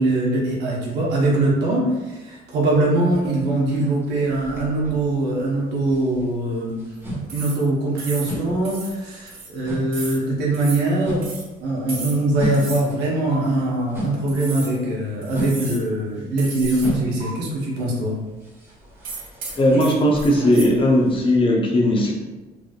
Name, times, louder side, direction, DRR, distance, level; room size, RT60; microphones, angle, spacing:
voice 1, 0.0-6.8 7.3-11.3 11.6-18.1, right 2 dB, 80° right, -4 dB, 1.0 m, -22 dB
sound 1, 3.1-5.5 5.8-14.4 14.7-21.4, right 1 dB, 15° right, 1.3 m, -33 dB
sound 2, 7.3-7.7 8.0-8.4 8.6-9.0 9.3-9.5 9.9-10.2 10.5-10.9 11.2-11.5 11.9-12.2 12.5-12.9 13.3-13.4 14.3-14.8 15.2-15.9 16.4-16.9 17.2-17.3 19.0-20.7, right 3 dB, 60° right, 1.1 m, -35 dB
voice 2, 19.6-22.1, left 1 dB, 30° left, -1 dB, 0.7 m, -17 dB
3.3 x 2.6 x 2.4 m, 1.2 s
cardioid pair, 110°, 17 cm